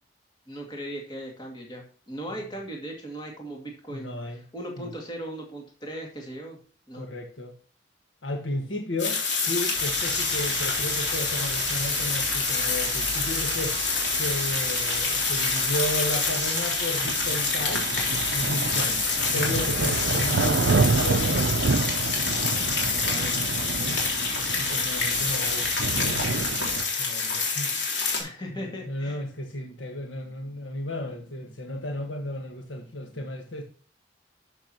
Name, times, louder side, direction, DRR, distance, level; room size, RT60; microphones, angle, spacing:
voice 1, 0.5-6.6 6.9-7.0 23.1-23.4 28.2-29.2, right 1 dB, 25° left, 2.3 m, -38 dB
voice 2, 3.9-4.4 4.8-4.9 6.9-7.5 8.2-17.9 18.3-21.7 23.7-24.0 24.6-27.7 28.5-33.6, left 1 dB, 80° left, 1.5 m, -34 dB
sound 1, 9.0-28.2, left 4 dB, 65° left, 3.4 m, -27 dB
sound 2, 9.8-26.8, right 4 dB, 60° right, 0.5 m, -30 dB
12.0 x 7.1 x 2.9 m
head